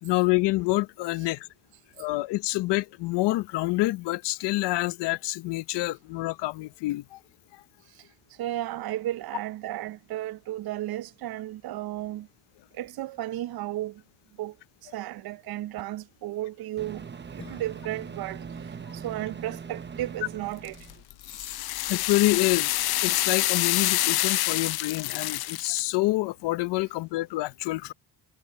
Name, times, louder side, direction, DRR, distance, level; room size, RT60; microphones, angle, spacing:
voice 1, 0.0-1.4 2.0-7.2 21.9-22.7 23.0-27.9, left 20 dB, 85° left, 1.0 m, -27 dB
voice 2, 8.4-12.3 12.7-14.0 14.4-14.5 14.8-17.1 17.3-20.8 21.3-21.6, right 14 dB, 65° right, 0.7 m, -34 dB
Microwave oven, 15.8-15.9 16.8-21.0, right 6 dB, 25° right, 1.0 m, -41 dB
Acoustic guitar / Strum, 17.4-22.1, left 7 dB, 45° left, 6.0 m, -55 dB
sound 1, 20.6-25.8, left 17 dB, 65° left, 0.6 m, -27 dB
cardioid pair, 80°, 41 cm